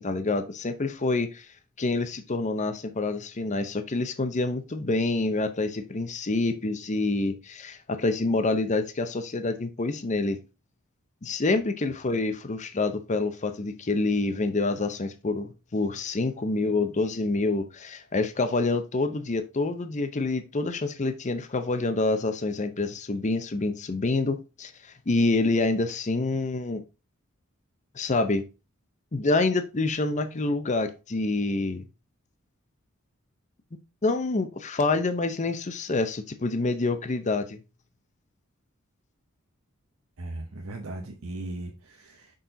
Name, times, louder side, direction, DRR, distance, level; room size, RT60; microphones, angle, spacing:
voice 1, 0.0-1.5 1.8-10.4 11.2-24.7 25.1-26.8 28.0-28.4 29.1-31.8 34.0-37.6, left 3 dB, 35° left, 0.6 m, -27 dB
voice 2, 40.2-42.3, right 2 dB, 90° right, 0.9 m, -37 dB
6.2 x 4.3 x 3.8 m
head